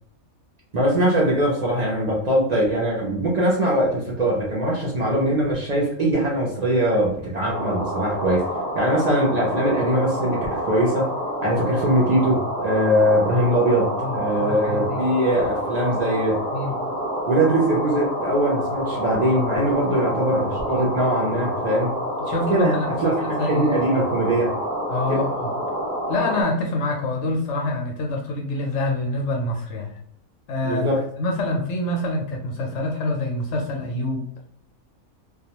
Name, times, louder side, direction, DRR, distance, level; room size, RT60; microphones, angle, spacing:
voice 1, 0.7-8.5 8.7-11.1 11.4-16.4 17.3-21.9 22.5-24.5 25.1-25.2 30.6-31.1, right 1 dB, 60° right, -4 dB, 0.4 m, -21 dB
sound 1, 7.5-26.4, equal, 25° right, 0.7 m, -28 dB
voice 2, 14.0-15.0 16.5-16.7 20.7-20.9 22.2-23.7 24.9-25.5 26.1-29.9 30.5-30.9 31.2-34.3, left 2 dB, 65° left, 1 dB, 0.7 m, -26 dB
2.3 x 2.2 x 2.8 m, 0.71 s
omnidirectional pair, 1.5 m